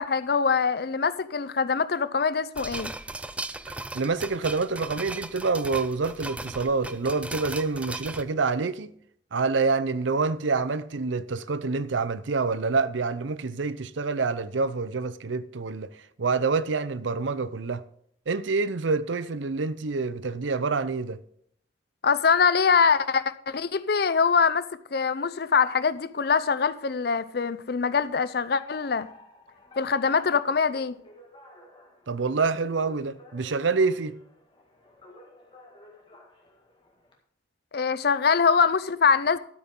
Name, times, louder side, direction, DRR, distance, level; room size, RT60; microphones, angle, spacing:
voice 1, 0.0-2.9 22.0-29.1 29.8-31.0 37.7-39.4, left 5 dB, 55° left, 0.5 m, -23 dB
sound 1, 2.5-8.2, right 2 dB, 5° right, 0.3 m, -37 dB
voice 2, 3.9-8.9 9.3-17.8 18.3-21.2 32.1-34.2, right 4 dB, 80° right, 0.6 m, -27 dB
Alarm, 28.6-37.1, left 2 dB, 25° left, 1.9 m, -52 dB
13.0 x 8.5 x 3.7 m
head